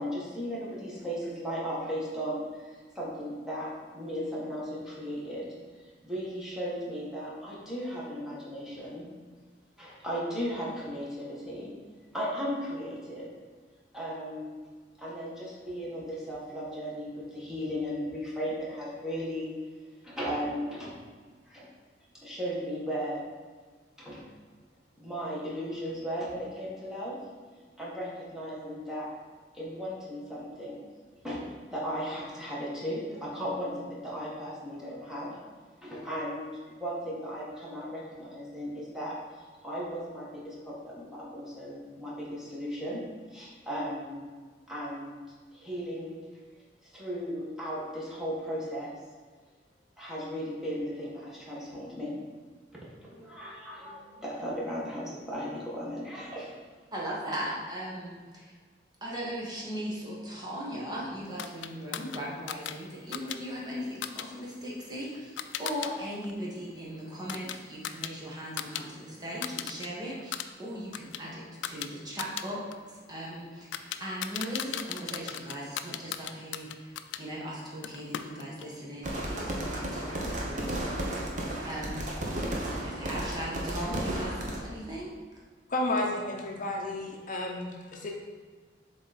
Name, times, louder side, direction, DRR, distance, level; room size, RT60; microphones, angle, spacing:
voice 1, 0.0-5.5 6.0-9.1 9.8-11.7 12.1-13.3 13.9-14.5 15.0-20.9 21.5-21.7 22.2-23.2 24.0-24.2 25.0-27.2 27.4-29.1 29.5-30.8 31.2-31.4 31.7-35.3 35.8-43.0 43.3-44.2 44.7-45.2 45.5-46.2 46.8-48.9 50.0-52.1 52.9-56.8, equal, 5° right, -7 dB, 1.7 m, -36 dB
voice 2, 56.9-58.5 59.0-72.6 72.9-80.8 81.6-82.4 82.7-85.1, equal, 25° right, -5 dB, 1.3 m, -38 dB
sound 1, 61.4-65.9 66.2-68.9 69.1-69.9 70.2-77.2 77.8-78.7, left 10 dB, 85° left, 0.4 m, -39 dB
sound 2, 79.0-84.6, right 1 dB, 45° right, 1.0 m, -33 dB
voice 3, 85.7-88.1, left 1 dB, 45° left, 0 dB, 0.7 m, -32 dB
7.1 x 3.9 x 4.2 m, 1.5 s
head